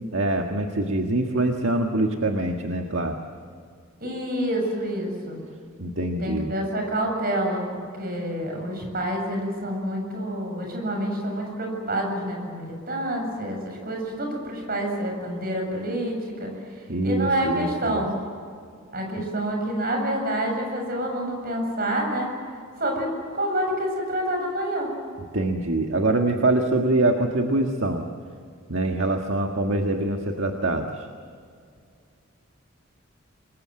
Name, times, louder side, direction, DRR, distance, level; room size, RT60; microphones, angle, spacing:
voice 1, 0.1-3.2 5.8-6.5 16.9-18.0 19.1-19.2 25.3-28.0 28.7-31.1, right 2 dB, 65° right, 3 dB, 1.7 m, -24 dB
voice 2, 4.0-5.4 6.2-16.5 17.0-18.1 18.9-22.3 22.8-24.9, right 1 dB, 45° right, 2 dB, 7.4 m, -28 dB
27.5 x 22.5 x 7.8 m, 2.2 s
head